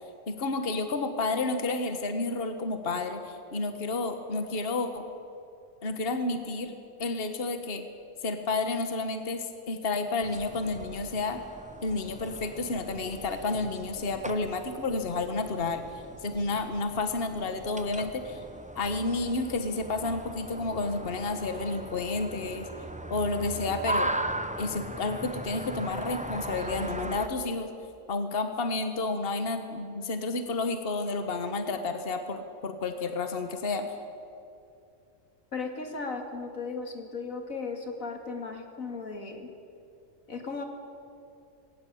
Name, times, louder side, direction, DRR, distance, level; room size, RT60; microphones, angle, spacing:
voice 1, 0.3-5.0 5.8-7.8 8.2-11.4 11.8-15.8 16.2-18.4 18.7-22.7 23.1-24.1 24.6-27.7 28.1-33.9, left 3 dB, 45° left, 7 dB, 1.6 m, -31 dB
sound 1, 10.2-27.3, right 1 dB, 5° right, 0.7 m, -38 dB
voice 2, 35.5-39.5 40.3-40.6, left 4 dB, 90° left, 4 dB, 2.7 m, -36 dB
20.0 x 18.0 x 8.7 m, 2.6 s
omnidirectional pair, 1.4 m